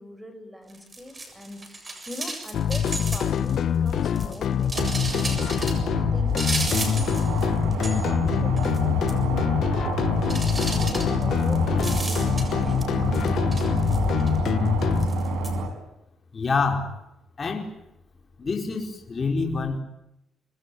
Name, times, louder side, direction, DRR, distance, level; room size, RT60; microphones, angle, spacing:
voice 1, 0.0-13.3, left 1 dB, 5° right, 9 dB, 6.6 m, -42 dB
sound 1, 0.7-3.6 3.9-5.8 6.4-7.5 7.7-8.3 8.6-8.8 9.1-9.2 10.3-12.8 13.1-14.4 15.0-15.5, right 2 dB, 25° right, 7.4 m, -34 dB
sound 2, 2.5-15.1, left 9 dB, 65° left, 1.1 m, -25 dB
sound 3, 4.7-15.7, right 2 dB, 80° right, 5.6 m, -28 dB
voice 2, 16.3-16.9 17.4-17.7 18.4-19.8, left 4 dB, 35° left, 2 dB, 4.6 m, -26 dB
26.0 x 21.5 x 9.4 m, 0.88 s
cardioid pair, 90°, 0 cm